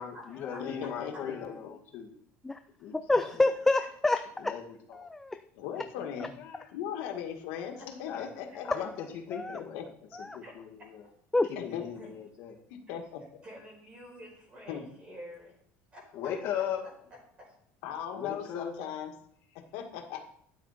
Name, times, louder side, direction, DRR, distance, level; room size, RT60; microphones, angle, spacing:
voice 1, 0.0-2.1 2.8-3.0 4.4-4.8 6.0-6.1 6.4-6.7 8.1-8.2 8.7-9.8 10.2-11.0 11.6-12.6 16.1-16.8 18.1-18.7, left 8 dB, 45° left, 1 dB, 2.2 m, -38 dB
voice 2, 0.6-1.1 1.4-1.5 5.6-6.3 6.6-8.9 9.5-9.8 11.6-11.8 12.7-13.2 14.7-14.8 17.8-19.1 19.6-20.2, left 9 dB, 80° left, 3 dB, 1.9 m, -38 dB
voice 3, 3.1-4.2 4.9-5.4 9.3-9.6 10.1-10.4 11.3-11.5, left 2 dB, 5° left, 8 dB, 0.4 m, -27 dB
voice 4, 13.4-15.5 15.9-16.3 17.4-17.5, equal, 25° right, -1 dB, 4.7 m, -48 dB
12.5 x 9.2 x 4.2 m, 0.66 s
cardioid pair, 175°, 5 cm